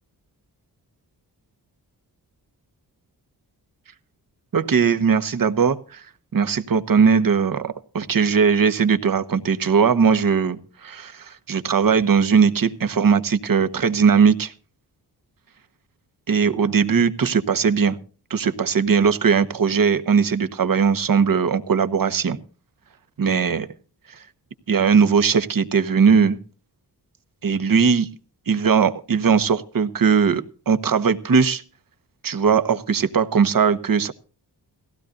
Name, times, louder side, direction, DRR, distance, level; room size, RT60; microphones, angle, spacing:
voice 1, 4.5-6.0 6.3-14.5 16.3-18.0 18.3-22.4 23.2-23.7 24.7-26.4 27.4-28.1 28.5-31.6 32.2-34.1, right 6 dB, 55° right, 11 dB, 1.3 m, -19 dB
18.5 x 16.0 x 2.6 m, 0.37 s
cardioid pair, 75°, 41 cm